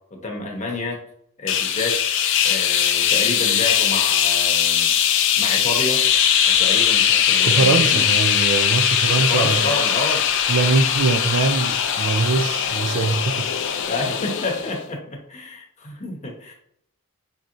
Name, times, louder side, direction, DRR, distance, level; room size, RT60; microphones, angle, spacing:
voice 1, 0.1-1.0 1.4-2.0 2.4-4.9 5.4-6.0 6.4-8.0 9.1-10.2 13.9-16.5, left 2 dB, 30° left, 0.9 m, -29 dB
sound 1, 1.5-14.8, left 9 dB, 55° left, 0.4 m, -20 dB
voice 2, 7.5-9.8 10.5-13.7, right 4 dB, 55° right, 0.4 m, -22 dB
6.0 x 2.8 x 2.5 m
head